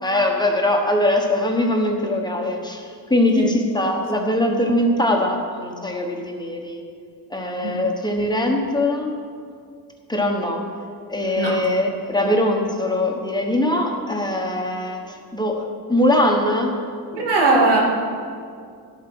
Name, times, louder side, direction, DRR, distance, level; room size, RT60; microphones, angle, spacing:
voice 1, 0.0-6.8 7.3-9.1 10.1-10.6 11.1-16.7, left 1 dB, 10° left, 1 dB, 1.1 m, -21 dB
voice 2, 17.1-17.8, right 3 dB, 90° right, -2 dB, 2.6 m, -20 dB
13.0 x 8.6 x 6.1 m, 2.3 s
wide cardioid pair, 155°, 39 cm